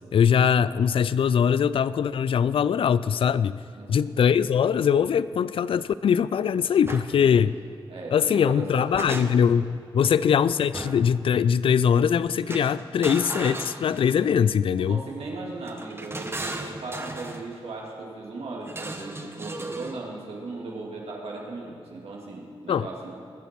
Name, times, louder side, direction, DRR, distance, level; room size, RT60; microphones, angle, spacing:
voice 1, 0.1-3.6 3.9-7.5 8.1-15.0 22.7-22.9, left 7 dB, 65° left, 17 dB, 0.4 m, -22 dB
voice 2, 3.8-4.1 7.1-7.5 7.9-9.2 10.0-10.2 14.8-23.2, right 3 dB, 90° right, -2 dB, 2.3 m, -37 dB
sound 1, 6.8-7.1 8.5-9.6 10.7-11.2 12.5-14.3 15.6-17.4 18.7-20.0, right 2 dB, 25° right, 1.2 m, -36 dB
21.0 x 7.1 x 6.0 m, 2.2 s
cardioid pair, 70°, 10 cm